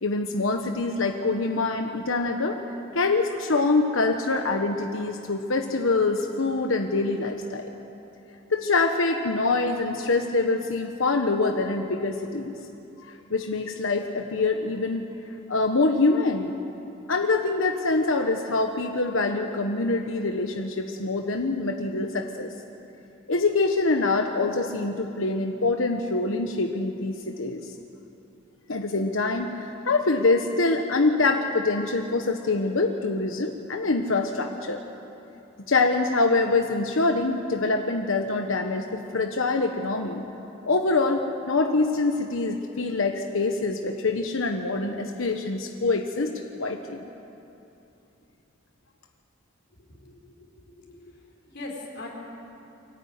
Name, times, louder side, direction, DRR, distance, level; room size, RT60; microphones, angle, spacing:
voice 1, 0.0-2.6 2.9-7.7 8.5-12.5 13.0-15.0 15.5-16.6 17.1-22.5 23.3-27.6 28.7-34.8 35.7-40.2 40.6-47.0, left 3 dB, 85° left, 4 dB, 1.2 m, -25 dB
voice 2, 49.8-51.2 51.5-52.1, left 2 dB, 60° left, -2 dB, 4.8 m, -41 dB
24.5 x 14.5 x 9.5 m, 2.9 s
head